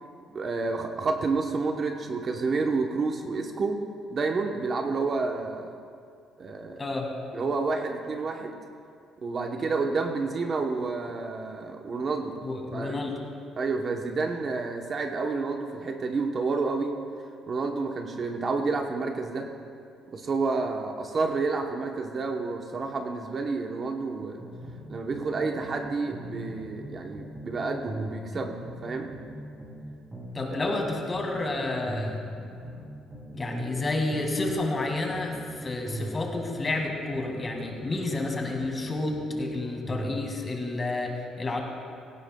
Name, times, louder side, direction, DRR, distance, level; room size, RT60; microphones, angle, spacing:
voice 1, 0.3-3.8 4.1-5.7 6.4-6.9 7.3-8.5 9.2-12.4 12.7-13.0 13.6-17.0 17.5-19.5 20.1-24.4 24.9-29.1 30.6-30.8, right 4 dB, 35° right, 3 dB, 0.8 m, -29 dB
voice 2, 6.8-7.1 12.4-13.1 30.3-32.2 33.3-41.6, left 2 dB, 25° left, 1 dB, 1.8 m, -30 dB
sound 1, 24.4-25.8 26.1-29.8 30.1-33.8 34.1-37.8 38.1-40.2, right 1 dB, 15° right, 2.8 m, -40 dB
17.5 x 16.5 x 2.2 m, 2.4 s
cardioid pair, 140°, 0 cm